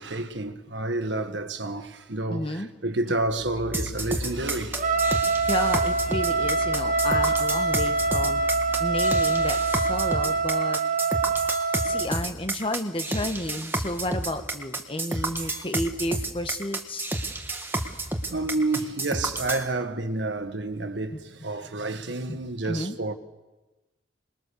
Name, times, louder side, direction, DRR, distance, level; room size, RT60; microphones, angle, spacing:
voice 1, 0.0-4.9 7.2-7.3 11.7-11.9 15.1-15.6 18.3-23.1, right 2 dB, 70° right, 1.5 m, -30 dB
voice 2, 2.3-2.7 5.4-8.4 8.8-10.8 11.8-17.2 21.1-21.2 22.3-22.4 22.6-23.0, left 1 dB, 30° left, 1.5 m, -31 dB
sound 1, 3.2-10.2, left 2 dB, 75° left, 2.2 m, -39 dB
sound 2, 3.7-19.7, right 2 dB, 10° right, 1.8 m, -30 dB
Trumpet, 4.7-12.1, right 3 dB, 45° right, 1.0 m, -25 dB
27.0 x 21.5 x 7.0 m
head